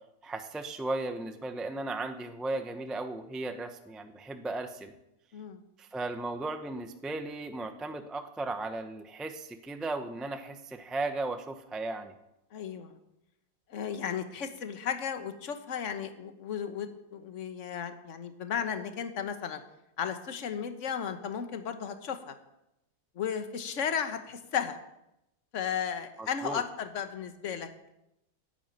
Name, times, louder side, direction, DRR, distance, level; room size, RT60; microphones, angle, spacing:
voice 1, 0.2-4.9 5.8-12.1 26.2-26.6, right 2 dB, ahead, 7 dB, 0.4 m, -36 dB
voice 2, 12.5-13.0 13.7-19.6 20.0-22.3 23.2-24.8 25.5-27.7, left 7 dB, 45° left, 8 dB, 1.4 m, -34 dB
11.0 x 9.4 x 8.9 m, 0.88 s
omnidirectional pair, 2.0 m